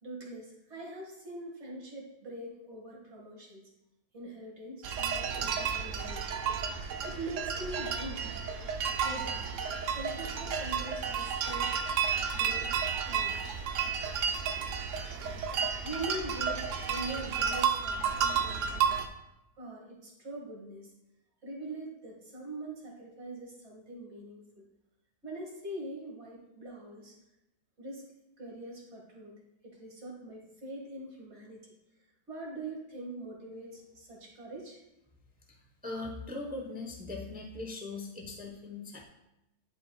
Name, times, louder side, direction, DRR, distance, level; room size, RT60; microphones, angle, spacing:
voice 1, 0.0-3.7 4.1-6.4 7.0-8.4 9.0-9.4 9.9-11.8 12.3-13.4 15.5-19.0 19.6-20.9 21.4-24.7 25.2-27.2 27.8-28.1 28.4-29.3 29.6-31.7 32.3-34.8, right 2 dB, 45° right, -2 dB, 2.1 m, -43 dB
sound 1, 4.8-19.1, right 6 dB, 65° right, 0.8 m, -32 dB
voice 2, 35.8-39.0, left 2 dB, 10° right, 0 dB, 0.5 m, -40 dB
11.0 x 5.0 x 2.3 m, 0.90 s
omnidirectional pair, 1.7 m